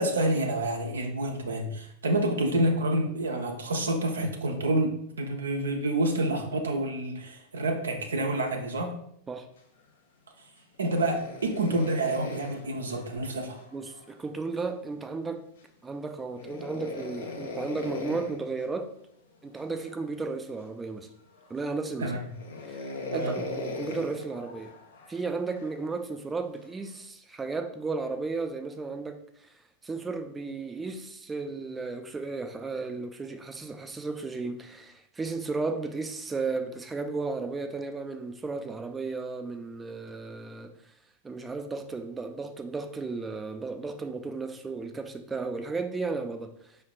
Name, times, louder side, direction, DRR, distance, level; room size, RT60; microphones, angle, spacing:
voice 1, 0.0-8.9 10.8-13.6 22.0-22.3 23.1-23.4, right 1 dB, 70° right, 2 dB, 0.5 m, -28 dB
sound 1, 10.7-14.1 16.4-18.4 19.5-20.0 20.6-20.7 21.3-21.8 22.3-25.8 26.6-27.0, left 2 dB, 65° left, 0.8 m, -39 dB
voice 2, 13.7-15.4 15.8-18.9 19.4-21.1 21.5-22.2 22.7-24.7 25.1-29.5 29.8-40.7 41.2-46.8, right 3 dB, 15° right, 7 dB, 0.4 m, -34 dB
5.5 x 3.2 x 2.3 m, 0.71 s
figure-of-eight pair, 90°, 0 cm